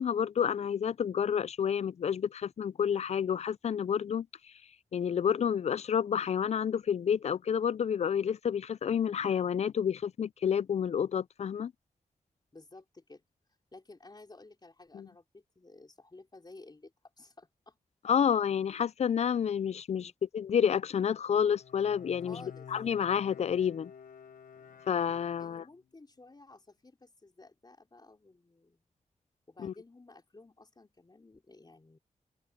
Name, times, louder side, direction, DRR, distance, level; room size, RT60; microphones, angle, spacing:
voice 1, 0.0-4.3 4.9-11.7 14.9-15.1 18.0-22.4 22.7-23.9 24.9-25.6 29.6-29.7, left 8 dB, 55° left, 0.4 m, -29 dB
voice 2, 12.5-13.2 13.7-17.8 20.0-20.1 22.2-22.7 24.5-24.7 25.4-28.9 29.5-32.0, left 2 dB, 30° left, 4.7 m, -54 dB
Bowed string instrument, 21.4-25.8, left 7 dB, 90° left, 1.0 m, -51 dB
open air
wide cardioid pair, 85°, 14 cm